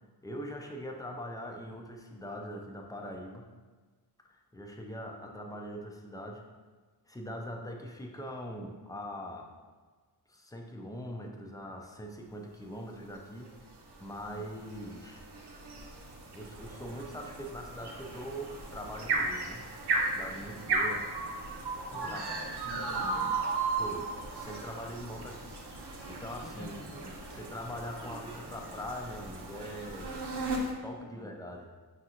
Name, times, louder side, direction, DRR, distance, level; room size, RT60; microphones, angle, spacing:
voice 1, 0.2-3.5 4.3-6.4 7.1-9.5 10.3-13.5 14.0-15.2 16.3-21.1 21.9-22.2 23.7-25.6 26.1-26.9 27.3-30.2 30.8-31.7, equal, 10° left, 1 dB, 0.4 m, -42 dB
sound 1, 13.4-30.7, right 3 dB, 85° right, 0.7 m, -36 dB
voice 2, 20.4-20.9 21.9-23.4 26.4-27.1 31.1-31.3, left 1 dB, 45° left, -4 dB, 0.9 m, -46 dB
5.8 x 2.5 x 2.8 m, 1.4 s
wide cardioid pair, 120°, 39 cm